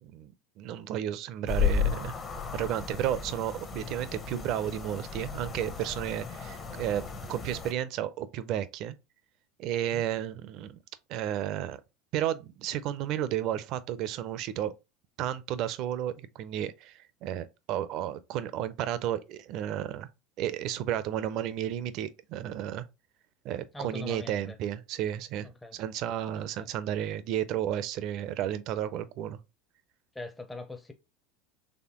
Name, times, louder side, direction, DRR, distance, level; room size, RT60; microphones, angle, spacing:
voice 1, 0.0-2.1 2.5-7.0 7.3-9.0 9.6-10.8 11.1-11.8 12.1-14.7 15.2-20.1 20.4-22.8 23.4-29.4, right 11 dB, 55° right, 0.5 m, -32 dB
sound 1, 1.5-7.7, left 6 dB, 35° left, 0.9 m, -34 dB
voice 2, 23.7-24.6 25.4-25.8 26.4-26.7 30.1-30.9, left 2 dB, 10° left, 0.6 m, -41 dB
4.2 x 3.2 x 3.0 m
hypercardioid pair, 90°, 0 cm